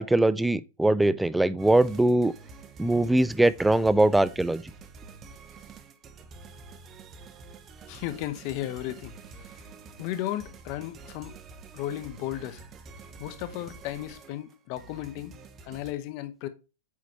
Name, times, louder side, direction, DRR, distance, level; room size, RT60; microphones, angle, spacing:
voice 1, 0.0-2.3 2.8-4.6, right 1 dB, 5° right, 0.4 m, -22 dB
sound 1, 1.6-15.9, right 4 dB, 30° right, 0.9 m, -48 dB
voice 2, 7.9-9.1 9.5-9.6 10.0-11.4 11.7-12.6 13.2-15.3 15.6-16.5, left 14 dB, 50° left, 1.0 m, -34 dB
8.6 x 4.1 x 3.1 m
hypercardioid pair, 120°, 0 cm